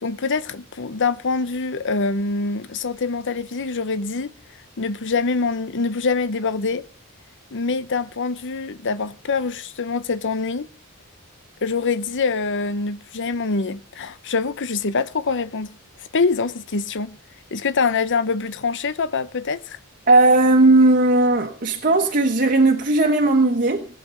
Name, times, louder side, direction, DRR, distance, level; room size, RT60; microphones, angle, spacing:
voice 1, 0.0-4.3 4.8-6.8 7.5-10.7 11.6-15.7 16.1-17.2 17.5-19.8, left 4 dB, 55° left, 0.8 m, -24 dB
voice 2, 20.1-23.9, right 2 dB, 40° right, 1.3 m, -16 dB
19.0 x 8.4 x 5.7 m
head